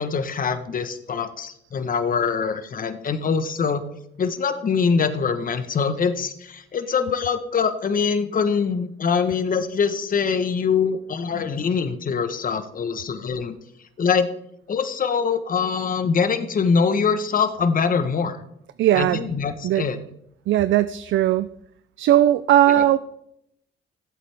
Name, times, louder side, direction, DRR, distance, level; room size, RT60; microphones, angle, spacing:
voice 1, 0.0-3.8 4.2-13.6 14.0-14.3 14.7-18.4 19.0-20.0 22.7-22.8, left 5 dB, 45° left, 10 dB, 1.1 m, -23 dB
voice 2, 18.8-19.2 19.6-19.9 20.5-21.5 22.0-23.0, right 12 dB, 75° right, 15 dB, 0.4 m, -18 dB
15.0 x 8.3 x 3.4 m, 0.76 s
cardioid pair, 90°, 20 cm